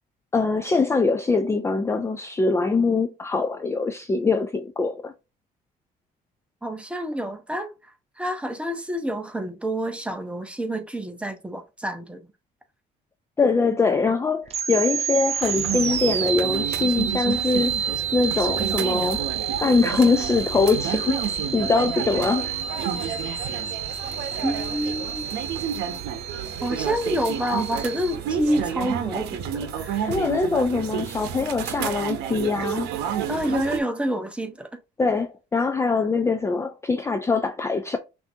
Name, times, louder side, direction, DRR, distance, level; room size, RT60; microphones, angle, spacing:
voice 1, 0.3-5.1 13.4-19.2 19.6-21.2 21.5-22.5 30.1-32.9 35.0-38.0, left 4 dB, 15° left, 0.4 m, -23 dB
voice 2, 6.6-7.7 8.2-12.2 24.4-25.3 26.6-30.1 33.3-34.8, equal, 5° right, 0.8 m, -28 dB
sound 1, 14.5-28.2, right 8 dB, 40° right, 0.6 m, -30 dB
sound 2, 15.4-33.8, right 8 dB, 85° right, 0.7 m, -31 dB
5.8 x 2.7 x 2.7 m
cardioid pair, 110°, 17 cm